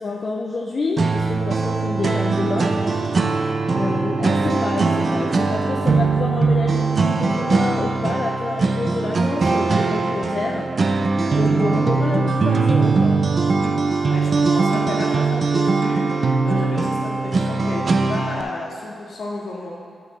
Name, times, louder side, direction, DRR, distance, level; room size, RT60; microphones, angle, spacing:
voice 1, 0.0-2.8 3.7-10.7 11.3-13.3, left 3 dB, 35° left, 0 dB, 0.5 m, -28 dB
sound 1, 1.0-18.4, right 4 dB, 40° right, 0.5 m, -20 dB
voice 2, 14.0-19.7, left 2 dB, 65° left, -4 dB, 1.7 m, -32 dB
12.5 x 5.4 x 3.2 m, 2.2 s
wide cardioid pair, 150°, 0 cm